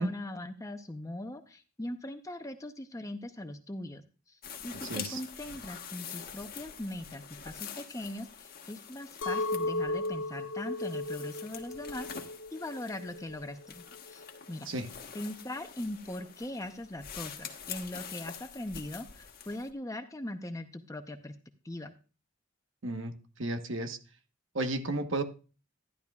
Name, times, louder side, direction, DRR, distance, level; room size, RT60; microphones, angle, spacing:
voice 1, 0.0-14.7 15.1-21.3 21.6-21.9, left 1 dB, 15° left, 7 dB, 0.7 m, -40 dB
sound 1, 4.4-19.7, left 7 dB, 50° left, 1.3 m, -46 dB
voice 2, 4.8-5.2 14.7-14.9 22.8-23.1 23.4-24.0 24.5-25.2, right 2 dB, 70° right, 7 dB, 1.2 m, -32 dB
Chink clink, 9.2-14.4, left 2 dB, 85° left, 0.6 m, -36 dB
13.0 x 11.0 x 2.4 m, 0.34 s
head